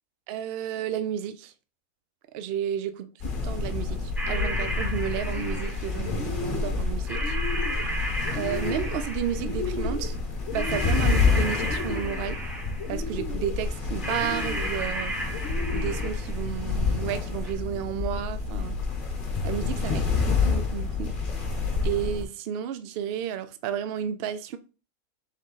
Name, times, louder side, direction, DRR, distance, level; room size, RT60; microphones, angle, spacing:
voice 1, 0.3-1.5 2.3-2.9 3.4-7.4 8.3-10.1 10.5-12.4 12.9-15.1 15.7-18.8 19.4-21.1 21.4-21.5 21.8-24.6, right 9 dB, 65° right, 0.6 m, -32 dB
sound 1, 3.2-22.2, left 4 dB, 40° left, 1.1 m, -28 dB
sound 2, 4.2-4.7 5.1-5.8 6.0-6.8 7.1-7.8 8.2-9.0 9.3-10.1 10.4-11.2 11.6-12.3 12.8-13.5 14.1-14.8 15.3-16.1, left 4 dB, 65° left, 0.9 m, -36 dB
sound 3, 4.2-6.1 7.1-9.5 10.5-13.0 14.0-16.4 17.5-17.6, right 1 dB, ahead, 0.6 m, -34 dB
3.7 x 3.7 x 3.9 m
omnidirectional pair, 1.5 m